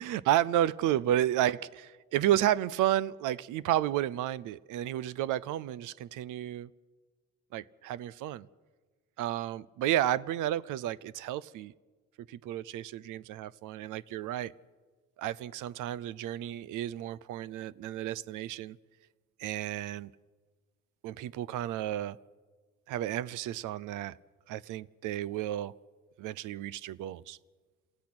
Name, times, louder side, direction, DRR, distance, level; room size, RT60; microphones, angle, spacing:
voice 1, 0.0-6.7 7.5-8.5 9.2-11.7 12.3-14.5 15.2-18.8 19.4-20.1 21.0-22.2 22.9-24.1 24.5-25.7 26.2-27.4, right 12 dB, 85° right, 0.6 m, -31 dB
28.0 x 15.5 x 6.1 m
cardioid pair, 90°, 30 cm